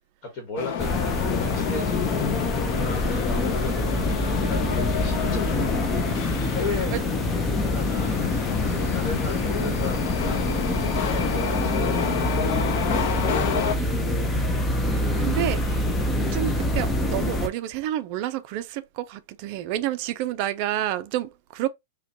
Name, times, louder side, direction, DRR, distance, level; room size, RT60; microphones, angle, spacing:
voice 1, 0.3-4.1 4.5-6.1 6.5-8.3 8.8-12.3 12.6-14.0, left 3 dB, 30° left, 1.2 m, -35 dB
sound 1, 0.6-13.7, left 8 dB, 45° left, 0.7 m, -29 dB
sound 2, 0.8-17.5, left 1 dB, 10° left, 0.5 m, -26 dB
voice 2, 14.8-21.7, right 12 dB, 40° right, 0.4 m, -30 dB
4.8 x 2.2 x 2.8 m
supercardioid pair, 160°, 0 cm